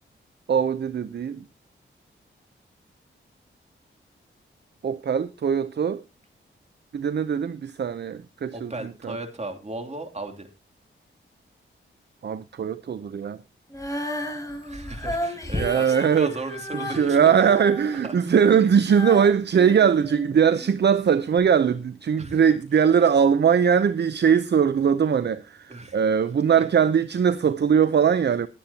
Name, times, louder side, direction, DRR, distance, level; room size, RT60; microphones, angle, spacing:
voice 1, 0.5-1.4 4.8-6.0 6.9-9.2 12.2-13.4 15.6-16.3 16.7-28.5, right 7 dB, 55° right, 0.7 m, -21 dB
voice 2, 8.5-10.5 14.7-17.5 18.0-18.1 22.2-22.4 25.7-26.0 26.5-26.7, right 2 dB, 30° right, 3.0 m, -35 dB
Female singing, 13.7-20.8 21.4-21.5, equal, 15° left, 3.8 m, -34 dB
20.5 x 8.5 x 2.9 m
cardioid pair, 70°, 21 cm